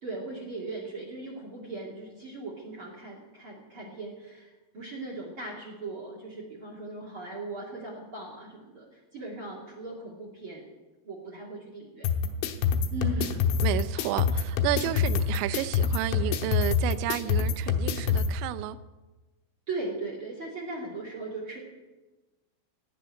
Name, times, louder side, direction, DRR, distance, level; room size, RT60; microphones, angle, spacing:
voice 1, 0.0-10.7 11.0-12.1 12.9-13.5 19.7-21.6, right 3 dB, 45° right, 1.7 m, -38 dB
sound 1, 12.0-18.3, left 6 dB, 75° left, 3.2 m, -26 dB
voice 2, 13.6-18.8, right 13 dB, 90° right, 2.6 m, -31 dB
17.0 x 6.8 x 9.6 m
omnidirectional pair, 6.0 m